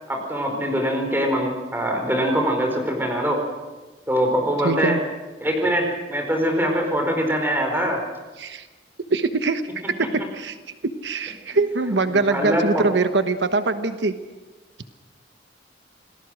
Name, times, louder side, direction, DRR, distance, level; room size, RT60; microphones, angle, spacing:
voice 1, 0.1-3.4 4.1-4.9 5.4-8.0 11.5-11.6 12.1-12.8, equal, 10° right, 3 dB, 4.6 m, -23 dB
voice 2, 4.6-5.0 8.4-8.7 9.1-10.6 10.8-14.1, right 3 dB, 85° right, 9 dB, 1.1 m, -23 dB
28.0 x 19.0 x 6.3 m, 1.3 s
head